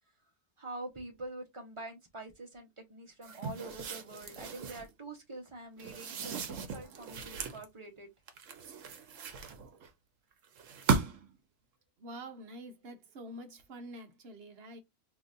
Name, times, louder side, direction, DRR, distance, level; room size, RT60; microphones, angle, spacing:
voice 1, 0.6-8.1, right 2 dB, 25° right, 1.0 m, -45 dB
sound 1, 3.2-4.9 5.8-7.6 8.3-9.9 10.6-11.4, right 5 dB, 75° right, 1.1 m, -36 dB
voice 2, 12.0-14.8, right 1 dB, 55° right, 1.0 m, -47 dB
3.8 x 2.9 x 2.5 m
omnidirectional pair, 1.3 m